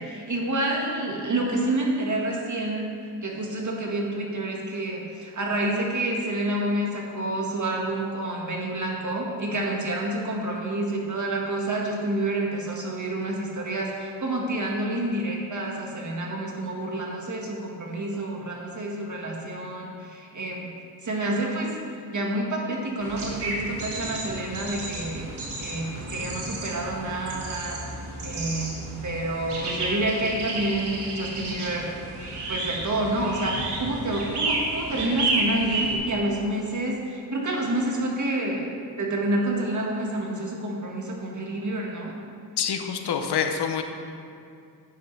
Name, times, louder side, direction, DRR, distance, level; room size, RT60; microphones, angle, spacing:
voice 1, 0.0-2.9 3.2-20.7 21.0-21.8 22.1-25.3 25.6-27.8 28.2-31.9 32.5-38.7 39.0-42.1, right 1 dB, 50° right, -1 dB, 1.8 m, -28 dB
sound 1, 23.0-35.9, right 2 dB, 85° right, 1.9 m, -32 dB
voice 2, 42.6-43.8, left 7 dB, 80° left, 6 dB, 0.8 m, -26 dB
10.5 x 8.4 x 3.4 m, 2.4 s
cardioid pair, 75°, 39 cm